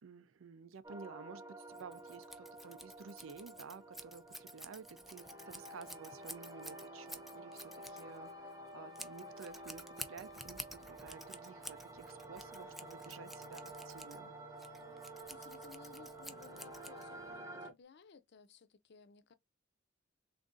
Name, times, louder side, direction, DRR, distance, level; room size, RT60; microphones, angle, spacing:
voice 1, 0.0-14.4, right 5 dB, 90° right, 0.5 m, -53 dB
sound 1, 0.8-17.7, right 1 dB, 20° right, 0.9 m, -51 dB
Scissors, 1.7-17.4, equal, ahead, 0.4 m, -52 dB
voice 2, 15.3-19.3, left 5 dB, 55° left, 0.5 m, -59 dB
3.6 x 2.6 x 3.7 m
head